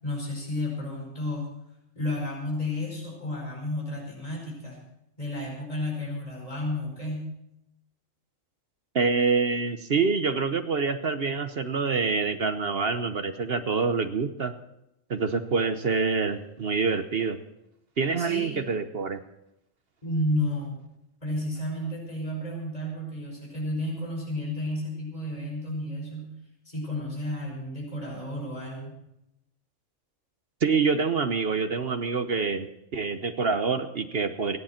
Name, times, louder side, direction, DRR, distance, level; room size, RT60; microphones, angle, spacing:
voice 1, 0.0-1.5 2.0-4.8 5.2-7.3 18.1-18.6 20.0-20.8 21.2-26.3 26.7-28.9, left 1 dB, 30° left, -2 dB, 5.2 m, -32 dB
voice 2, 8.9-14.5 15.1-17.4 18.0-19.2 30.6-34.6, right 4 dB, 50° right, 9 dB, 1.0 m, -26 dB
27.0 x 10.5 x 4.4 m, 0.83 s
omnidirectional pair, 1.4 m